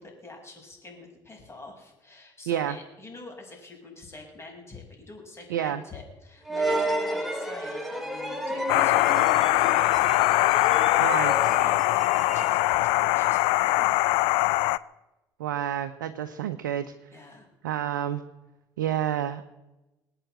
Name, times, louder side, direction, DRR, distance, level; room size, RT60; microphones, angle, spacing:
voice 1, 0.0-14.3 17.1-17.5, left 3 dB, 25° left, 1 dB, 6.3 m, -46 dB
voice 2, 2.5-2.8 5.5-5.8 11.0-11.3 15.4-17.1 17.6-18.2 18.8-19.4, right 10 dB, 85° right, 8 dB, 0.7 m, -29 dB
sound 1, 6.5-12.9, right 1 dB, ahead, 2.6 m, -32 dB
sound 2, 8.7-14.8, left 20 dB, 70° left, 0.5 m, -22 dB
20.0 x 9.0 x 7.9 m, 1.0 s
hypercardioid pair, 65°, 10 cm